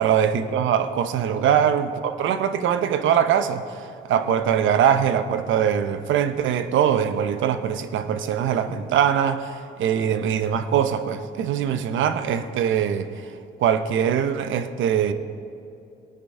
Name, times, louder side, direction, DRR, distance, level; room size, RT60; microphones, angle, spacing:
voice 1, 0.0-13.3 13.6-15.1, right 8 dB, 75° right, 0.7 m, -22 dB
18.5 x 9.6 x 3.7 m
cardioid pair, 90°, 20 cm